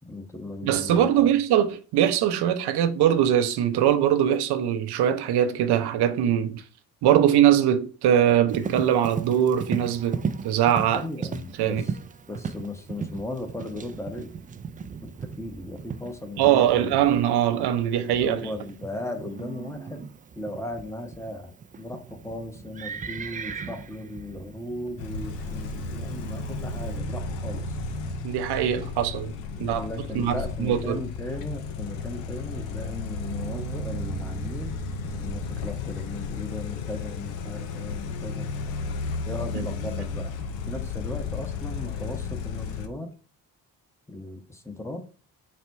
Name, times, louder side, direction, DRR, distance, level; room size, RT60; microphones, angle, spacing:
voice 1, 0.1-1.3 10.9-12.0 12.3-14.3 15.0-17.0 18.2-20.0 20.4-21.5 21.8-27.8 29.5-38.5 39.2-40.3 40.7-43.1 44.1-45.0, left 1 dB, 5° left, 0.8 m, -37 dB
voice 2, 0.6-6.6 7.0-11.0 11.6-11.8 16.4-18.5 28.2-29.3 29.6-29.9 30.1-31.0, right 10 dB, 60° right, 0.7 m, -22 dB
Livestock farm animals working animals, 8.5-27.0, right 5 dB, 20° right, 0.3 m, -37 dB
sound 1, 25.0-42.9, left 4 dB, 85° left, 0.6 m, -33 dB
4.2 x 2.2 x 4.5 m
hypercardioid pair, 55°, 44 cm